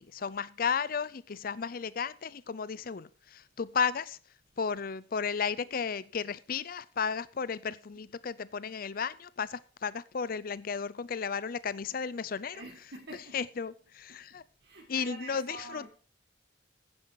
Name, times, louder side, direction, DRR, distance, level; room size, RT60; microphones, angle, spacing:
voice 1, 0.0-4.2 4.6-12.6 13.3-14.4 14.9-15.9, left 6 dB, 50° left, 0.5 m, -34 dB
voice 2, 12.5-13.4 14.1-15.9, right 2 dB, 65° right, 1.9 m, -47 dB
10.5 x 9.9 x 4.7 m
head